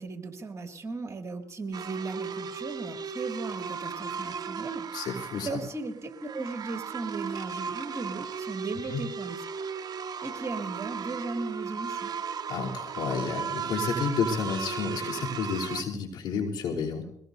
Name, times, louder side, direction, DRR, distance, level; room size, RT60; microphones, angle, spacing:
voice 1, 0.0-4.9 5.4-9.4 10.2-12.1, right 3 dB, 40° right, 5 dB, 2.1 m, -37 dB
sound 1, 1.7-15.8, right 6 dB, 55° right, 0.8 m, -36 dB
voice 2, 4.9-5.6 8.9-9.0 12.5-17.0, left 5 dB, 75° left, -2 dB, 3.3 m, -31 dB
22.0 x 18.0 x 2.7 m, 0.76 s
supercardioid pair, 55°, 8 cm